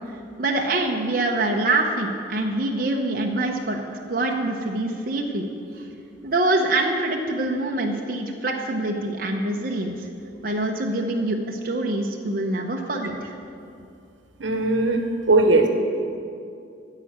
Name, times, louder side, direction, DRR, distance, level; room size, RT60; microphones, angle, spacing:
voice 1, 0.4-3.8 4.1-5.4 5.8-5.9 6.2-10.1 10.4-13.3, right 2 dB, 50° right, 1 dB, 0.9 m, -25 dB
voice 2, 14.4-15.7, right 2 dB, 85° right, 4 dB, 1.1 m, -19 dB
13.0 x 5.0 x 8.7 m, 2.5 s
head